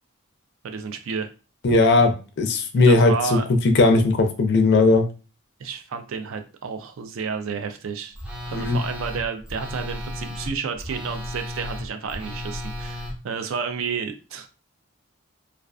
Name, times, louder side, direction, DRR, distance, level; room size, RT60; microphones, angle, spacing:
voice 1, 0.6-1.3 2.8-3.5 5.6-8.2 8.5-14.5, right 5 dB, 70° right, 7 dB, 0.4 m, -31 dB
voice 2, 1.6-3.4 3.6-5.0 8.5-8.8, left 3 dB, 50° left, 5 dB, 0.4 m, -18 dB
Telephone, 8.1-13.1, left 1 dB, 5° right, 0.5 m, -33 dB
2.3 x 2.3 x 2.3 m, 0.33 s
head